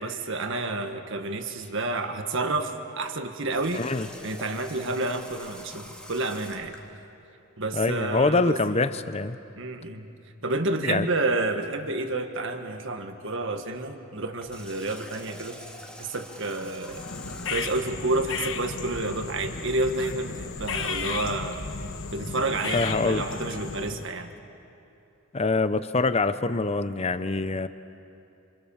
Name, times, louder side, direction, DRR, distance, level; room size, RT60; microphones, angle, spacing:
voice 1, 0.0-3.8 4.2-6.7 7.6-8.6 9.5-10.1 10.4-15.6 16.0-17.1 17.5-21.6 22.1-24.3, right 2 dB, 60° right, 6 dB, 1.7 m, -29 dB
Water tap faucet, 3.5-6.9 14.3-18.1, equal, 5° left, 1.9 m, -45 dB
voice 2, 3.7-4.1 7.7-9.4 10.8-11.1 22.7-23.3 25.3-27.7, left 3 dB, 30° left, 13 dB, 0.7 m, -25 dB
sound 1, 16.9-24.1, left 5 dB, 60° left, 1.3 m, -34 dB
27.5 x 26.5 x 7.2 m, 2.8 s
head